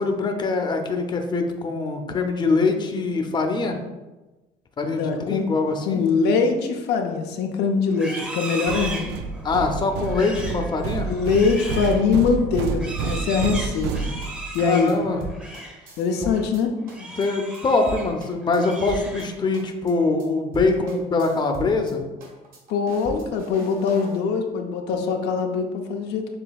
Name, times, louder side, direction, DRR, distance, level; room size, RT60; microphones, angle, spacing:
voice 1, 0.0-3.8 4.8-6.0 9.4-11.1 14.6-15.2 16.2-16.3 17.0-22.0, left 3 dB, 25° left, 4 dB, 0.6 m, -23 dB
voice 2, 4.8-5.5 5.9-9.1 11.1-14.1 14.5-15.0 16.0-16.8 22.7-26.3, left 5 dB, 85° left, 3 dB, 0.6 m, -23 dB
Livestock farm animals working animals, 7.9-15.8 16.2-16.5 16.9-18.1 18.5-19.5, right 2 dB, 5° right, 0.8 m, -36 dB
sound 1, 8.7-14.7, right 5 dB, 85° right, 0.4 m, -29 dB
sound 2, 13.5-16.6 16.9-17.3 17.5-17.6 17.9-19.3 19.5-19.9 20.2-20.3 20.5-21.9 22.2-24.2, right 3 dB, 55° right, 1.4 m, -39 dB
6.8 x 3.2 x 2.3 m, 1.1 s
cardioid pair, 110°, 17 cm